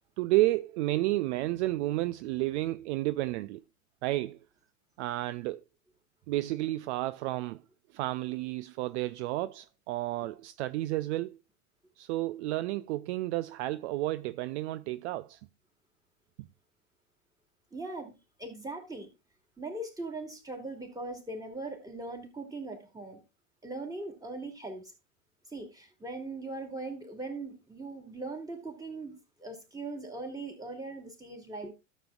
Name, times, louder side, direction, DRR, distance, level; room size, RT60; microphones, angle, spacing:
voice 1, 0.2-3.6 4.0-4.4 5.0-5.6 6.3-7.6 7.9-11.4 12.0-15.4 16.4-16.5, right 17 dB, 55° right, 0.5 m, -31 dB
voice 2, 17.7-19.1 19.6-23.2 23.6-24.9 25.5-31.7, right 2 dB, 10° right, 2.5 m, -40 dB
13.0 x 7.2 x 2.4 m
hypercardioid pair, 100°, 42 cm